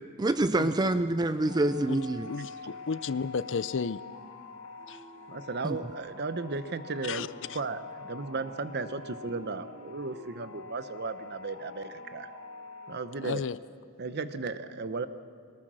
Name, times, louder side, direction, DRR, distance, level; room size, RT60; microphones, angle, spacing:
voice 1, 0.2-2.3 5.6-5.8, right 2 dB, 20° right, 11 dB, 0.4 m, -26 dB
sound 1, 1.4-13.0, left 3 dB, 80° left, 4.0 m, -46 dB
voice 2, 2.2-4.0 4.9-5.0 7.0-7.6 13.2-13.6, left 5 dB, 60° left, 16 dB, 0.5 m, -33 dB
voice 3, 5.3-12.3 12.9-13.4 14.0-15.1, right 3 dB, 50° right, 11 dB, 0.9 m, -35 dB
22.5 x 20.0 x 6.3 m, 2.2 s
head